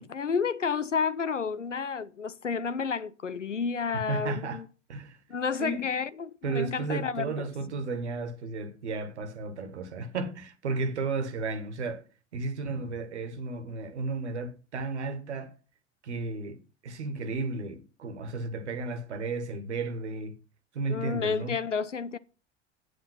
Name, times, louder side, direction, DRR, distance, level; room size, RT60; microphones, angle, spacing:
voice 1, 0.1-4.7 5.3-7.5 20.9-22.2, left 5 dB, 85° left, 0.7 m, -31 dB
voice 2, 4.1-4.6 4.9-5.2 5.6-5.9 6.4-12.0 12.3-15.5 16.0-20.4 20.7-21.6, right 3 dB, 70° right, 1.7 m, -33 dB
8.5 x 8.4 x 5.7 m
figure-of-eight pair, 80°, 35 cm